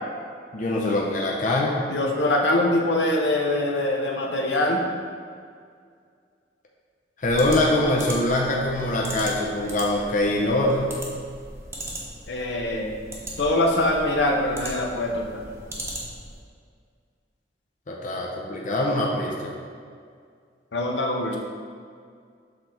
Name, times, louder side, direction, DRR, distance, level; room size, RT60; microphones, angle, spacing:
voice 1, 0.5-1.8 7.2-10.9 17.9-19.5, left 1 dB, 45° left, -2 dB, 0.6 m, -23 dB
voice 2, 1.9-4.8 12.3-12.9 13.4-15.4 20.7-21.4, left 1 dB, 75° left, 0 dB, 0.8 m, -23 dB
sound 1, 7.2-16.4, right 1 dB, 15° right, 0.9 m, -38 dB
6.8 x 3.9 x 4.3 m, 2.1 s
head